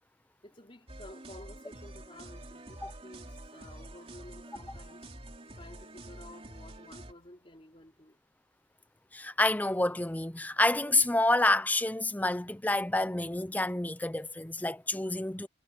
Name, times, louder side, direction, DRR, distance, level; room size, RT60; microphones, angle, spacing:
voice 1, 0.4-5.1 5.5-8.2, left 1 dB, 30° left, 3.7 m, -52 dB
sound 1, 0.9-7.1, right 1 dB, 30° right, 3.5 m, -47 dB
voice 2, 9.1-15.5, left 2 dB, 10° left, 0.6 m, -28 dB
head